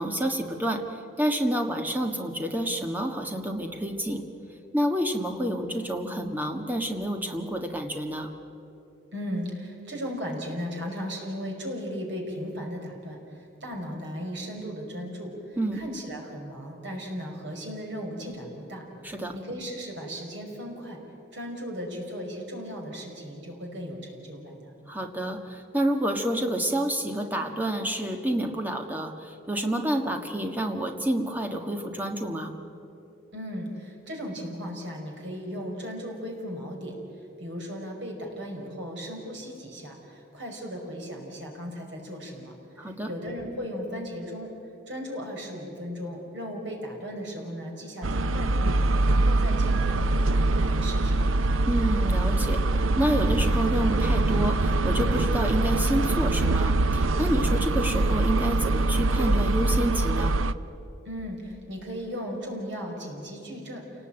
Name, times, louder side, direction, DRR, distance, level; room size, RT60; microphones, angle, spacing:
voice 1, 0.0-4.3 4.7-8.3 15.6-15.8 19.0-19.3 24.9-32.5 42.8-43.1 51.7-52.6 53.0-60.4, right 1 dB, 10° right, 4 dB, 1.6 m, -29 dB
voice 2, 9.1-18.8 19.3-21.0 21.3-24.7 33.3-37.0 37.4-44.5 44.9-48.7 49.1-51.2 61.1-63.8, equal, 65° right, 0 dB, 5.3 m, -36 dB
sound 1, 48.0-60.5, right 2 dB, 90° right, 0.7 m, -23 dB
28.5 x 19.0 x 9.0 m, 2.9 s
head